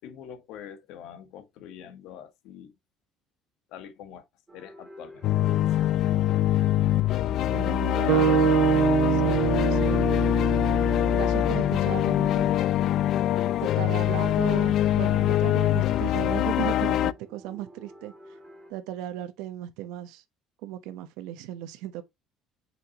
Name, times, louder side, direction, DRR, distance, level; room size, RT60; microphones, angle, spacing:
voice 1, 0.0-2.7 3.7-4.2 4.5-6.0 8.1-9.0 13.3-13.8, left 9 dB, 70° left, 1.3 m, -45 dB
sound 1, 4.5-18.7, equal, 15° right, 2.3 m, -49 dB
sound 2, 5.2-17.1, left 12 dB, 50° left, 0.3 m, -24 dB
voice 2, 7.5-8.3 9.2-10.6 11.1-12.5 13.6-18.1 18.7-20.2 20.6-22.0, right 14 dB, 90° right, 1.0 m, -36 dB
sound 3, 8.1-12.3, right 16 dB, 60° right, 0.7 m, -26 dB
5.9 x 5.8 x 2.9 m
cardioid pair, 155°, 0 cm